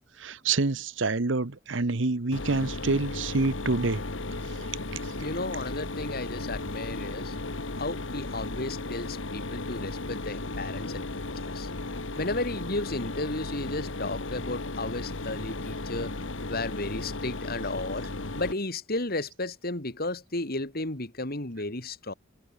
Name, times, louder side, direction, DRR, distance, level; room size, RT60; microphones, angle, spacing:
voice 1, 0.0-4.0 4.6-4.7 5.0-5.1, right 3 dB, 70° right, 1.1 m, -27 dB
Mechanisms, 2.3-18.5, left 2 dB, 70° left, 1.8 m, -35 dB
voice 2, 5.2-7.3 7.8-11.7 12.2-16.2 16.5-22.1, left 2 dB, 50° left, 2.9 m, -34 dB
head